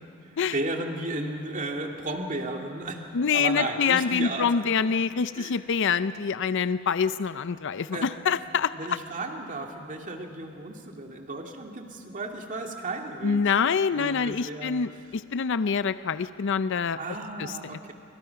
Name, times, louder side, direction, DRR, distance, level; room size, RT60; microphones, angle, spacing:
voice 1, 0.0-4.5 4.8-4.9 5.3-5.6 7.9-8.2 8.7-13.4 13.9-14.8 17.0-17.9, right 2 dB, 40° right, 2 dB, 2.3 m, -34 dB
voice 2, 3.1-9.0 13.2-17.0 17.4-17.5, left 6 dB, 65° left, 13 dB, 0.5 m, -26 dB
28.5 x 24.5 x 5.8 m, 2.5 s
head